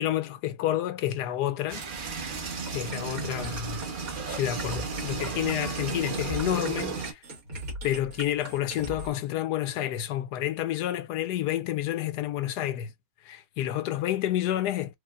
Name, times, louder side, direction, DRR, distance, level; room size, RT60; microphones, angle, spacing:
voice 1, 0.0-1.9 2.7-3.9 4.3-7.2 7.8-12.9 13.2-14.9, left 12 dB, 85° left, 1.2 m, -29 dB
sound 1, 1.7-7.1, right 4 dB, 45° right, 0.7 m, -34 dB
sound 2, 2.7-9.1, right 1 dB, 60° right, 2.1 m, -40 dB
4.8 x 2.5 x 2.4 m
omnidirectional pair, 1.7 m